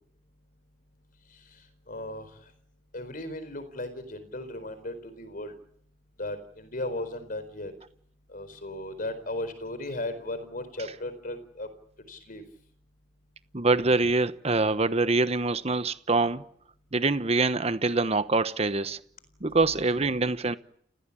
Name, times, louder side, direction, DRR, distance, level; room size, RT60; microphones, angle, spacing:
voice 1, 1.9-2.3 2.9-5.6 6.2-7.7 8.3-11.7 12.1-12.4, left 1 dB, 50° left, 4.4 m, -36 dB
voice 2, 13.5-16.4 16.9-19.0 19.4-20.6, right 3 dB, 35° right, 1.0 m, -25 dB
30.0 x 17.5 x 8.6 m
head